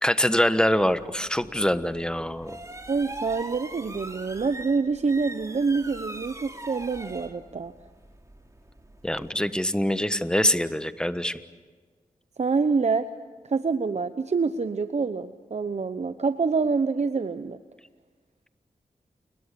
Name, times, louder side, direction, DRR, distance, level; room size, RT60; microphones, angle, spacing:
voice 1, 0.0-2.6 9.0-11.4, equal, 5° left, 11 dB, 1.4 m, -24 dB
sound 1, 0.7-9.3, right 2 dB, 20° right, 3.4 m, -42 dB
voice 2, 2.9-7.7 12.4-13.1 13.4-17.6, right 4 dB, 50° right, 10 dB, 0.9 m, -26 dB
29.5 x 22.0 x 6.9 m, 1.4 s
cardioid pair, 60°, 15 cm